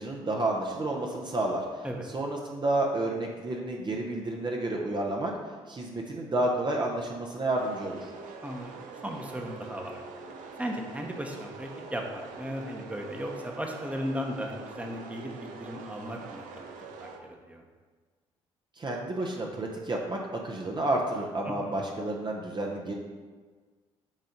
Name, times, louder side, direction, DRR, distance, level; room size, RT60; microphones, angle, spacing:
voice 1, 0.0-5.3 5.7-8.1 18.8-22.9, right 2 dB, 35° right, 0 dB, 0.8 m, -30 dB
sound 1, 7.6-17.2, right 4 dB, 70° right, 0.6 m, -45 dB
voice 2, 9.0-10.0 10.6-16.5 17.0-17.1 17.5-17.6 21.6-21.8, equal, 10° right, 2 dB, 1.0 m, -36 dB
7.2 x 2.6 x 5.1 m, 1.5 s
hypercardioid pair, 55°, 14 cm